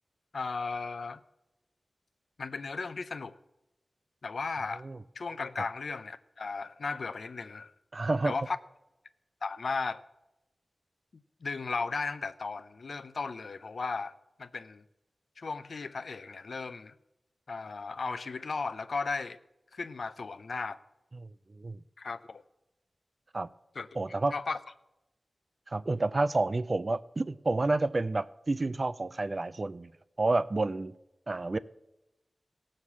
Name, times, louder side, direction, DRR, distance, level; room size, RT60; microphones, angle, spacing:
voice 1, 0.3-1.2 2.4-3.4 4.2-4.8 5.2-7.7 8.2-8.6 9.4-10.0 11.4-14.8 15.4-16.9 17.5-19.4 19.7-20.8 22.0-22.4 23.7-23.9 24.3-24.6, left 4 dB, 75° left, 0.5 m, -35 dB
voice 2, 7.9-8.3 21.2-21.3 21.6-21.8 23.3-23.5 24.0-24.3 25.7-29.9 30.2-30.9 31.3-31.6, right 2 dB, 45° right, 0.5 m, -29 dB
16.0 x 6.5 x 7.2 m
cardioid pair, 55°, 0 cm